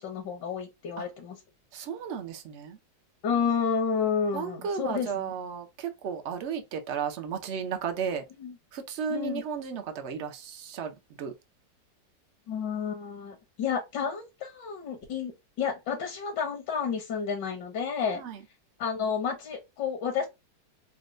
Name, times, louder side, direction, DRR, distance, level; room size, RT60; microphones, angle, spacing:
voice 1, 0.0-1.4 3.2-5.3 8.4-8.5 9.1-9.4 12.5-15.3 15.6-18.2 18.8-20.3, left 6 dB, 75° left, 1.5 m, -30 dB
voice 2, 1.7-2.8 4.3-8.2 8.7-11.3 18.1-18.4, right 7 dB, 65° right, 0.6 m, -34 dB
4.2 x 2.2 x 2.5 m
omnidirectional pair, 2.0 m